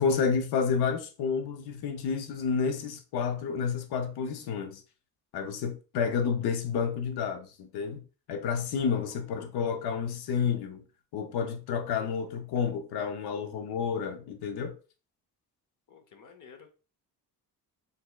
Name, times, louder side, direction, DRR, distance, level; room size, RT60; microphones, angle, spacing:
voice 1, 0.0-4.8 5.3-8.0 8.3-10.8 11.1-14.8, left 6 dB, 85° left, 0.7 m, -30 dB
voice 2, 15.9-16.7, left 6 dB, 55° left, 0.8 m, -52 dB
4.3 x 3.4 x 2.2 m
cardioid pair, 115°, 37 cm